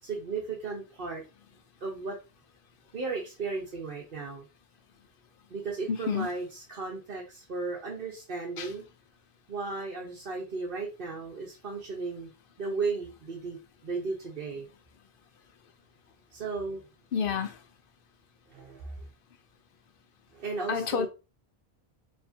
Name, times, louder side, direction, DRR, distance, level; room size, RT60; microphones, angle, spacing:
voice 1, 0.0-1.2 1.8-2.2 2.9-4.4 5.5-8.9 9.5-12.3 12.6-13.6 13.8-14.7 16.3-16.8 18.5-19.1 20.3-21.1, right 4 dB, 60° right, 1.1 m, -35 dB
voice 2, 5.9-6.3 8.6-8.7 17.1-17.6 20.7-21.1, left 6 dB, 60° left, 0.8 m, -29 dB
4.7 x 2.9 x 2.7 m
omnidirectional pair, 1.0 m